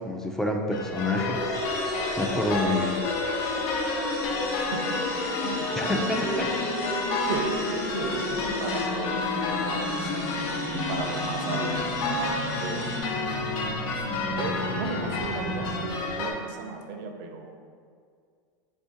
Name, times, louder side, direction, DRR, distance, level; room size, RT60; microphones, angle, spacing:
voice 1, 0.0-1.6 2.2-3.1 5.8-6.5, left 2 dB, 5° left, 2 dB, 0.4 m, -28 dB
sound 1, 0.7-16.3, left 3 dB, 60° left, 0.6 m, -31 dB
sound 2, 0.9-15.8, left 2 dB, 85° left, 0.9 m, -33 dB
sound 3, 1.5-13.0, left 1 dB, 25° left, 0.9 m, -39 dB
voice 2, 4.5-5.0 5.4-6.5 6.8-6.9 7.1-10.3 10.7-13.1 13.9-17.5, right 4 dB, 65° right, 4 dB, 0.5 m, -35 dB
4.3 x 2.6 x 3.7 m, 2.2 s
supercardioid pair, 125°, 11 cm